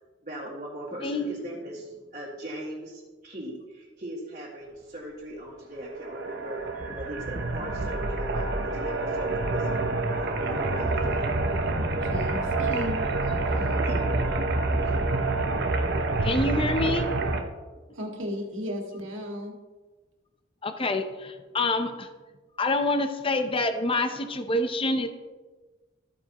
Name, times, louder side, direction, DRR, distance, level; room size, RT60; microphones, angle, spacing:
voice 1, 0.2-6.6 6.9-11.3 13.9-15.0, right 1 dB, 40° right, -6 dB, 1.9 m, -40 dB
sound 1, 5.8-17.4, right 2 dB, 60° right, 0.9 m, -27 dB
voice 2, 12.0-13.8 17.9-19.5, equal, 90° right, 0 dB, 2.0 m, -35 dB
voice 3, 16.2-17.1 20.6-22.1 22.6-25.1, left 2 dB, 30° left, 8 dB, 0.7 m, -26 dB
13.5 x 9.3 x 3.0 m, 1.3 s
head